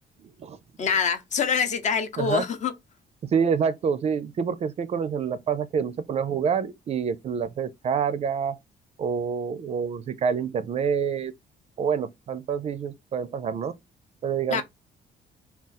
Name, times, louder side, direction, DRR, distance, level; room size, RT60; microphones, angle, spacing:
voice 1, 0.2-0.6 2.2-2.4 3.3-8.6 9.0-11.3 11.8-13.7 14.2-14.6, right 6 dB, 40° right, 0.4 m, -27 dB
voice 2, 0.8-2.7 14.5-14.6, left 6 dB, 45° left, 0.7 m, -25 dB
3.6 x 2.3 x 4.0 m
cardioid pair, 155°, 16 cm